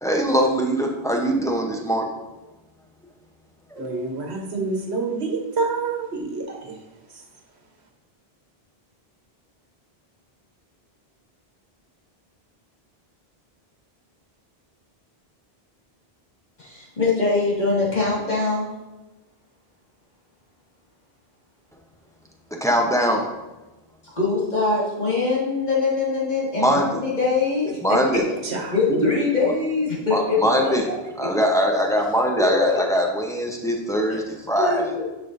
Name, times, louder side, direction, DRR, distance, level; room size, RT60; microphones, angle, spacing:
voice 1, 0.0-2.1 3.7-4.0 22.6-23.2 26.5-27.0 27.8-28.2 29.4-29.5 30.1-30.9 31.2-34.9, equal, 5° left, 1 dB, 0.7 m, -22 dB
voice 2, 3.8-6.8 7.1-7.2 28.1-29.0, right 3 dB, 90° right, 1 dB, 1.4 m, -28 dB
voice 3, 16.6-18.7 24.1-28.0 28.7-31.0 32.4-32.8 34.1-34.2 34.6-35.0, left 3 dB, 45° left, -7 dB, 2.2 m, -23 dB
10.5 x 5.5 x 2.6 m, 1.1 s
omnidirectional pair, 1.1 m